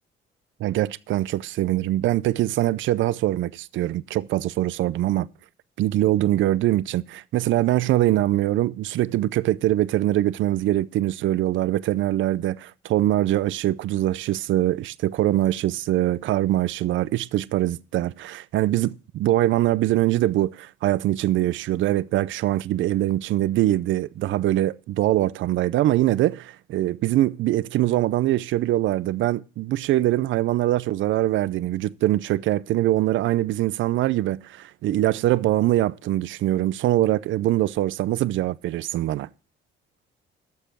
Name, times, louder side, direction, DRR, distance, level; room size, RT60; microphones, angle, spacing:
voice 1, 0.6-5.3 5.8-39.3, right 14 dB, 75° right, 0.5 m, -23 dB
12.0 x 6.7 x 6.0 m
cardioid pair, 90°, 20 cm